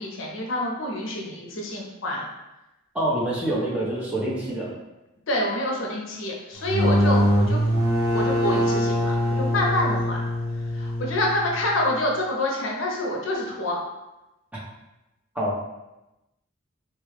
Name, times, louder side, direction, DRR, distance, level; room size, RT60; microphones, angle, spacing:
voice 1, 0.0-2.3 5.3-7.6 8.1-10.2 10.7-13.8, left 1 dB, 65° left, -2 dB, 0.7 m, -27 dB
voice 2, 2.9-4.7 15.3-15.6, right 1 dB, 5° right, -7 dB, 0.7 m, -26 dB
sound 1, 6.6-12.1, equal, 85° right, 1.1 m, -23 dB
3.5 x 2.2 x 3.2 m, 0.98 s
head